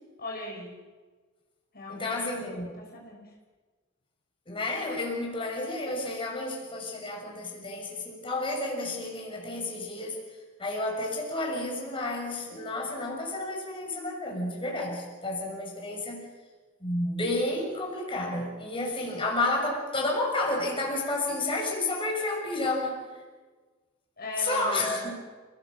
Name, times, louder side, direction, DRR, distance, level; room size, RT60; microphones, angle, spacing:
voice 1, 0.2-0.7 1.7-2.2 2.6-3.3 24.2-25.1, left 1 dB, 50° left, 0 dB, 5.8 m, -38 dB
voice 2, 1.9-2.7 4.5-10.2 10.6-16.3 16.8-23.0 24.4-25.2, left 2 dB, 25° left, 0 dB, 6.2 m, -31 dB
29.5 x 18.0 x 7.6 m, 1.4 s
head